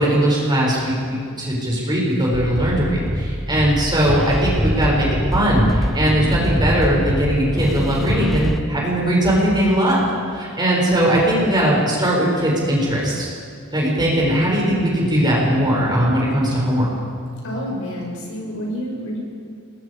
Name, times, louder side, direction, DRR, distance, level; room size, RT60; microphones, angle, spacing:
voice 1, 0.0-10.0 10.3-13.3 13.7-16.9, right 1 dB, 20° right, -4 dB, 6.4 m, -19 dB
sound 1, 2.3-8.6, equal, ahead, 0.7 m, -23 dB
voice 2, 17.4-19.2, equal, 65° left, -2 dB, 6.1 m, -28 dB
28.5 x 20.5 x 5.0 m, 2.3 s
head